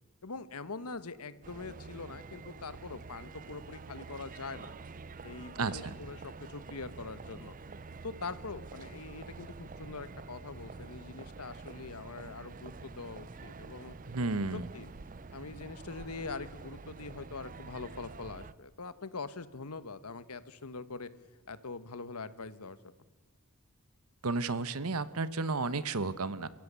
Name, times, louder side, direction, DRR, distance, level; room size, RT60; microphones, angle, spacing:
voice 1, 0.2-4.7 5.2-7.6 8.0-13.9 14.5-14.9 15.3-21.1 21.5-22.9, left 4 dB, 85° left, 14 dB, 1.2 m, -43 dB
sound 1, 1.4-18.5, right 4 dB, 35° right, 0.6 m, -47 dB
voice 2, 5.6-5.9 14.1-14.7 24.2-26.5, right 3 dB, 75° right, 15 dB, 1.1 m, -32 dB
28.5 x 15.5 x 8.2 m, 1.3 s
head